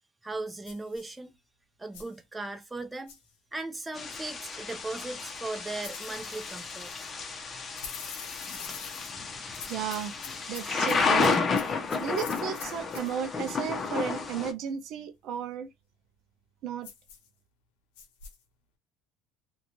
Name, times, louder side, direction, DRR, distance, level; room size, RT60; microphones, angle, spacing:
voice 1, 0.2-1.3 1.8-3.1 3.5-6.9, right 2 dB, 15° right, 0.6 m, -37 dB
sound 1, 0.6-1.1 1.9-2.2 3.1-3.3 5.8-7.1 7.7-9.1 9.5-13.1 16.8-17.3 18.0-18.4, left 7 dB, 85° left, 0.6 m, -45 dB
Thunder / Rain, 3.9-14.5, left 4 dB, 35° left, 0.6 m, -31 dB
voice 2, 9.6-10.1 10.5-11.4 12.0-15.7 16.6-16.9, right 8 dB, 65° right, 0.4 m, -34 dB
2.4 x 2.2 x 2.9 m
supercardioid pair, 90°, 0 cm